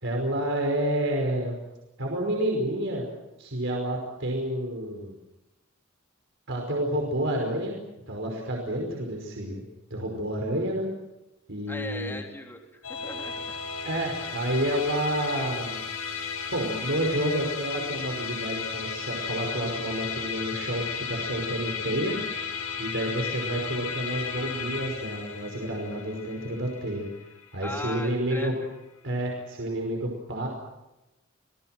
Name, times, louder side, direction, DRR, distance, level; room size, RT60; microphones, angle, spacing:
voice 1, 0.0-1.6 2.0-3.1 3.4-5.2 6.5-7.8 8.1-9.6 9.9-10.9 11.5-12.2 13.8-15.8 16.5-22.2 22.8-27.1 27.5-28.5 29.0-30.5, right 1 dB, 65° right, 0 dB, 5.4 m, -29 dB
voice 2, 11.7-13.6 27.6-28.5, left 1 dB, 10° left, 2 dB, 3.4 m, -38 dB
Musical instrument, 12.8-28.4, left 6 dB, 90° left, 6.9 m, -35 dB
30.0 x 20.0 x 7.8 m, 0.96 s
head